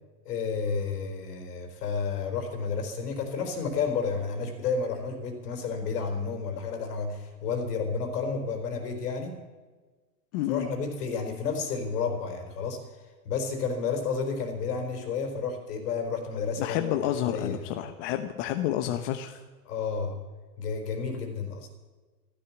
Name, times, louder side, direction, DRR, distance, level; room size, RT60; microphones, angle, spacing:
voice 1, 0.2-9.4 10.5-12.8 13.2-16.9 17.3-17.7 19.6-20.2 20.6-21.7, left 5 dB, 85° left, 5 dB, 4.3 m, -31 dB
voice 2, 10.3-10.7 16.6-19.4, left 12 dB, 55° left, 7 dB, 1.1 m, -29 dB
13.5 x 13.5 x 7.2 m, 1.3 s
supercardioid pair, 150°, 45 cm